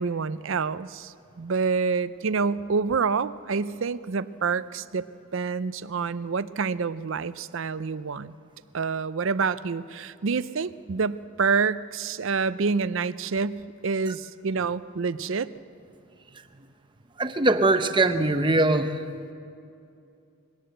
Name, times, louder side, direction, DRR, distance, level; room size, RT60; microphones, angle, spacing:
voice 1, 0.0-5.0 5.3-8.3 8.7-15.5, right 5 dB, 60° right, 16 dB, 0.5 m, -27 dB
voice 2, 17.2-19.0, right 2 dB, 20° right, 9 dB, 0.8 m, -22 dB
22.0 x 18.0 x 7.9 m, 2.5 s
head